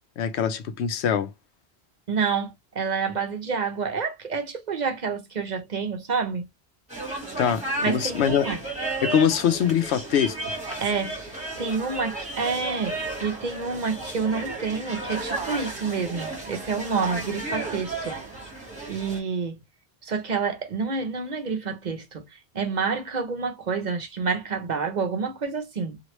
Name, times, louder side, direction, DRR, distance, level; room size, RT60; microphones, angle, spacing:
voice 1, 0.2-1.3 7.4-8.5 9.0-10.4, left 8 dB, 90° left, 0.9 m, -23 dB
voice 2, 2.1-6.4 7.8-8.6 10.8-18.2 18.9-19.6 20.0-26.0, right 5 dB, 50° right, 0.7 m, -28 dB
sound 1, 6.9-19.2, right 2 dB, 5° right, 1.4 m, -33 dB
3.0 x 2.4 x 3.0 m
omnidirectional pair, 1.1 m